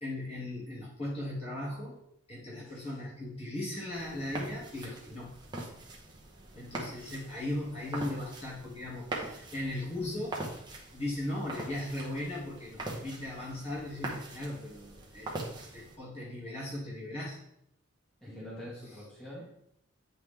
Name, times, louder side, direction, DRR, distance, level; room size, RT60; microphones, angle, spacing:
voice 1, 0.0-2.0 2.3-5.3 6.5-10.4 10.9-15.4 15.7-17.4 18.3-18.7, left 1 dB, 30° left, -7 dB, 2.1 m, -38 dB
sound 1, 3.9-16.0, right 2 dB, 20° right, 0.9 m, -43 dB
voice 2, 18.2-19.6, equal, ahead, -9 dB, 1.9 m, -46 dB
8.9 x 4.0 x 3.4 m, 0.76 s
head